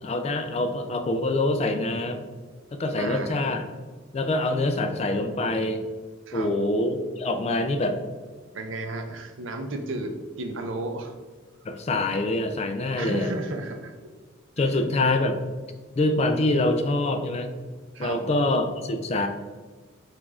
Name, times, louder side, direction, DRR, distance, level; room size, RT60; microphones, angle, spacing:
voice 1, 0.0-2.3 2.7-3.6 4.1-5.8 6.3-8.0 11.6-13.3 14.6-15.4 16.0-17.5 18.0-19.3, left 2 dB, 30° left, 6 dB, 0.3 m, -25 dB
voice 2, 3.0-3.3 6.3-6.5 8.5-11.1 13.0-14.1 14.6-14.8 17.9-18.2, right 2 dB, 70° right, 5 dB, 0.5 m, -33 dB
4.9 x 2.5 x 3.5 m, 1.4 s
head